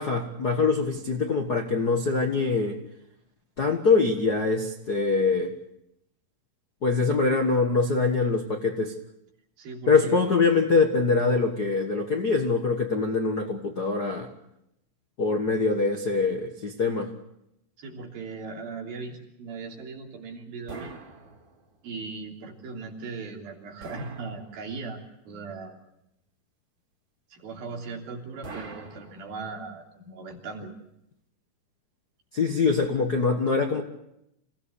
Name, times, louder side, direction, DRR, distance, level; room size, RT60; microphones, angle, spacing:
voice 1, 0.0-2.8 3.6-5.6 6.8-8.9 9.9-14.3 15.2-17.1 32.3-33.8, left 4 dB, 55° left, 3 dB, 1.1 m, -24 dB
voice 2, 9.6-10.4 17.8-20.9 21.8-25.7 27.3-30.8, right 4 dB, 90° right, 1 dB, 5.0 m, -38 dB
sound 1, 20.7-21.9 23.8-25.0 28.4-29.7, right 3 dB, 35° right, 3.4 m, -43 dB
27.0 x 17.0 x 8.3 m, 0.84 s
omnidirectional pair, 4.1 m